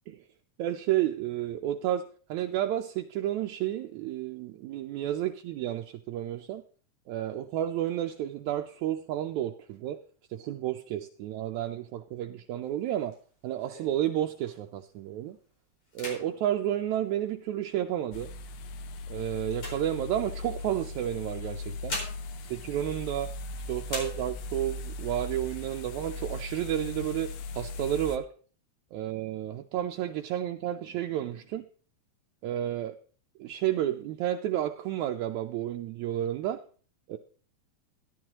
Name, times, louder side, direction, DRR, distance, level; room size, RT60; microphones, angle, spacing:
voice 1, 0.6-6.6 7.1-10.0 10.3-13.1 13.4-15.4 16.0-18.3 19.1-22.0 22.4-23.3 23.7-28.3 28.9-31.7 32.4-33.0 33.4-36.6 37.1-37.2, right 12 dB, 80° right, 4 dB, 1.9 m, -31 dB
sound 1, 12.6-14.8 15.3-15.5 15.8-17.8 18.4-20.6 21.5-23.5 23.8-24.7 25.1-25.2 25.5-26.2 26.6-27.5, left 1 dB, 50° left, 5.5 m, -43 dB
sound 2, 18.1-28.2, left 2 dB, 80° left, 2.2 m, -39 dB
13.0 x 12.5 x 2.9 m, 0.42 s
omnidirectional pair, 3.5 m